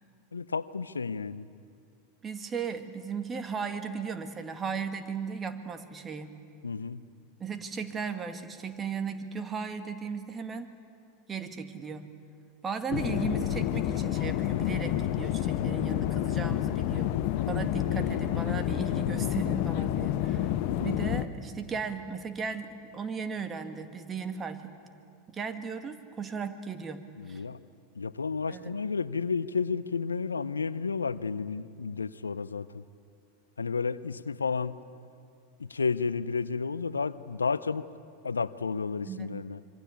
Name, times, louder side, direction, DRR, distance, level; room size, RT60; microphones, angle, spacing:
voice 1, 0.3-1.5 6.6-7.0 20.8-20.9 27.2-27.6 27.9-32.8 33.6-34.8 35.6-37.9 38.2-39.6, left 5 dB, 85° left, 17 dB, 0.6 m, -32 dB
voice 2, 2.2-6.3 7.4-10.7 11.3-12.1 12.6-17.2 17.5-24.7 25.3-27.4 28.5-28.8 39.1-39.3, right 5 dB, 25° right, 8 dB, 2.0 m, -36 dB
sound 1, 12.9-21.2, left 12 dB, 55° left, 1.0 m, -29 dB
26.0 x 23.5 x 8.5 m, 2.3 s
hypercardioid pair, 90°, 0 cm